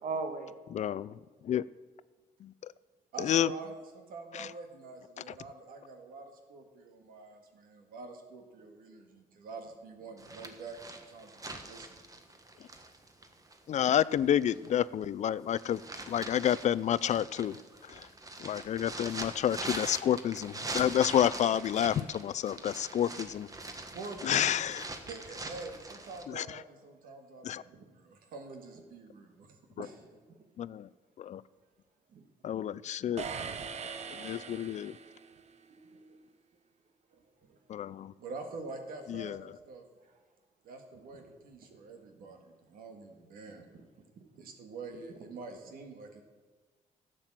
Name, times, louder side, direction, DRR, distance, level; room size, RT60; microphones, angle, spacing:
voice 1, 0.0-0.6 27.6-27.9 29.8-30.4 32.1-32.2 35.3-35.4 35.7-36.2 37.5-37.6 42.2-42.3 44.2-44.4, right 4 dB, 65° right, 6 dB, 1.7 m, -41 dB
voice 2, 0.7-1.1 1.4-1.7 2.4-2.7 3.2-3.5 4.3-4.5 13.7-17.6 17.8-18.1 18.4-23.5 24.2-24.9 26.3-26.6 27.4-27.6 29.8-29.9 30.6-30.9 31.2-31.4 32.4-33.2 34.1-35.0 37.7-38.1 39.1-39.4, left 10 dB, 55° left, 18 dB, 0.4 m, -30 dB
voice 3, 3.1-12.0 23.9-24.8 25.1-29.5 29.8-29.9 38.2-39.8 40.6-43.7 44.4-46.2, right 3 dB, 85° right, 4 dB, 1.9 m, -46 dB
sound 1, 10.2-14.8 15.3-26.2, right 2 dB, 25° right, 1.2 m, -43 dB
sound 2, 33.2-35.4, right 6 dB, 50° right, 0.9 m, -41 dB
12.0 x 7.6 x 7.5 m, 1.4 s
cardioid pair, 100°, 14 cm